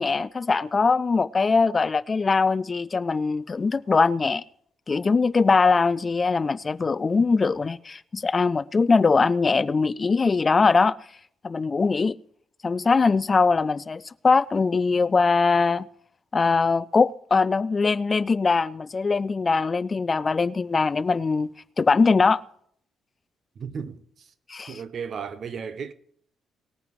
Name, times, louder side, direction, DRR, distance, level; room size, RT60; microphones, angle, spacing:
voice 1, 0.0-4.4 4.9-10.9 11.4-12.2 12.6-15.9 16.3-21.5 21.8-22.4 24.5-24.7, left 4 dB, 30° left, 0.3 m, -21 dB
voice 2, 23.6-24.3 24.7-25.9, right 6 dB, 55° right, 0.8 m, -35 dB
19.5 x 9.1 x 3.1 m
cardioid pair, 90°, 0 cm